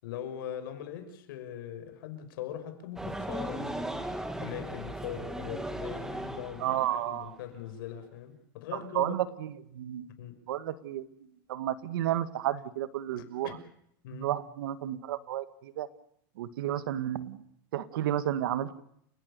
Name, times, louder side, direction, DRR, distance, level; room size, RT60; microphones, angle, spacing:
voice 1, 0.0-4.1 4.4-6.7 7.1-9.2 10.2-10.4 13.2-13.6 14.0-14.3, left 9 dB, 75° left, 8 dB, 5.8 m, -41 dB
sound 1, 3.0-7.4, right 1 dB, 5° right, 1.9 m, -37 dB
voice 2, 6.6-7.4 8.7-10.1 10.5-11.1 11.5-13.6 14.1-15.9 16.4-17.4 17.7-18.8, right 12 dB, 80° right, 13 dB, 1.8 m, -32 dB
30.0 x 17.5 x 6.9 m, 0.71 s
supercardioid pair, 160°, 12 cm